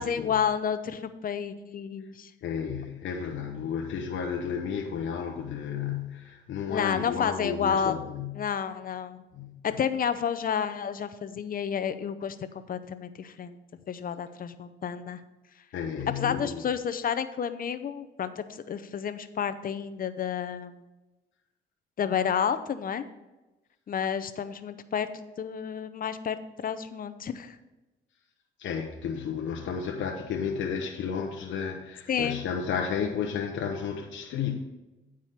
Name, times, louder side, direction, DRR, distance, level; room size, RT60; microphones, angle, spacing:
voice 1, 0.0-2.3 6.7-7.9 8.4-9.2 9.6-12.4 12.7-13.6 13.9-15.2 16.2-20.8 22.0-23.0 23.9-25.1 25.4-26.4 26.6-27.6 32.1-32.4, left 7 dB, 45° left, 0.7 m, -30 dB
voice 2, 2.4-8.4 9.3-9.6 15.7-16.7 28.6-34.6, left 7 dB, 70° left, 0.9 m, -32 dB
9.0 x 4.9 x 5.8 m
cardioid pair, 90°, 20 cm